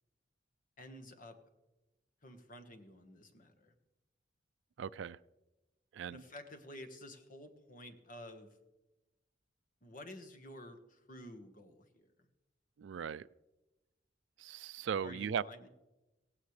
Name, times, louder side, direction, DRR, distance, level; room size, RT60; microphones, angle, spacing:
voice 1, 0.8-1.4 2.2-3.7 6.1-8.6 9.8-12.1 15.0-15.7, left 1 dB, 45° left, 6 dB, 1.5 m, -51 dB
voice 2, 4.8-5.2 5.9-6.2 12.8-13.3 14.4-15.4, right 7 dB, 70° right, 18 dB, 0.4 m, -38 dB
17.0 x 16.0 x 3.3 m, 1.0 s
head